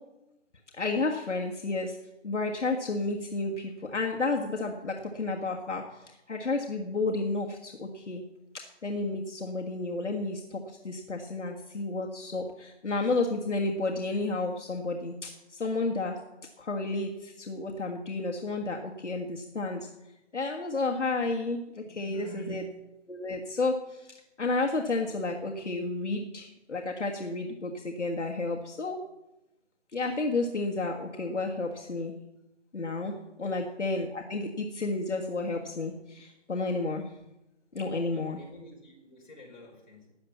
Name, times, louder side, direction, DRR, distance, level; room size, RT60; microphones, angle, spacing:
voice 1, 0.7-2.0 2.2-8.2 8.5-16.2 16.6-19.9 20.3-22.6 23.1-29.0 29.9-32.1 32.7-37.1 37.7-38.4, left 3 dB, 70° left, 1 dB, 1.7 m, -31 dB
voice 2, 21.8-22.8 33.4-33.7 38.1-40.1, right 2 dB, 40° left, -2 dB, 4.8 m, -48 dB
13.0 x 9.2 x 7.3 m, 0.96 s
figure-of-eight pair, 175°, 37 cm